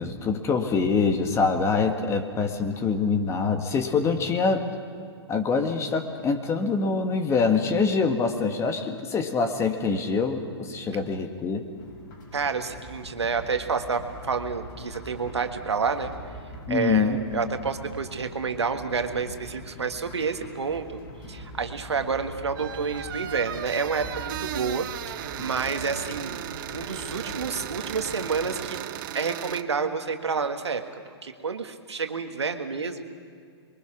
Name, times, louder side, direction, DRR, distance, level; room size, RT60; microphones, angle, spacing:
voice 1, 0.0-4.7 5.3-11.7 16.7-17.2, left 4 dB, 20° left, 6 dB, 1.7 m, -25 dB
sound 1, 11.7-28.7, left 1 dB, 45° left, 4.6 m, -43 dB
voice 2, 12.3-16.1 16.7-21.0 21.3-26.4 26.7-28.8 29.1-30.9 31.2-33.0, right 5 dB, 80° right, 6 dB, 1.7 m, -29 dB
sound 2, 22.6-29.6, right 12 dB, 50° right, 0.9 m, -36 dB
28.0 x 22.5 x 6.1 m, 2.2 s
figure-of-eight pair, 120°, 14 cm